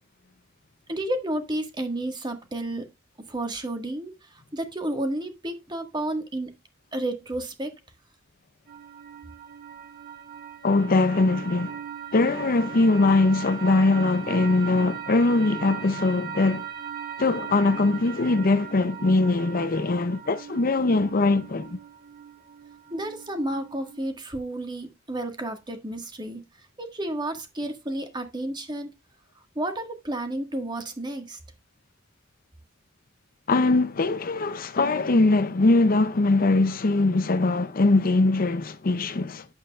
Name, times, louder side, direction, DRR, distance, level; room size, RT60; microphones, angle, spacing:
voice 1, 0.9-2.9 3.3-6.5 6.9-7.8 22.9-26.4 26.8-28.9 29.5-31.4, right 1 dB, 20° right, 1.6 m, -31 dB
sound 1, 8.7-24.0, right 8 dB, 45° right, 1.8 m, -39 dB
voice 2, 10.6-11.8 12.1-16.7 17.2-21.8 33.5-39.5, left 2 dB, 45° left, 0.6 m, -22 dB
9.7 x 8.0 x 2.3 m
head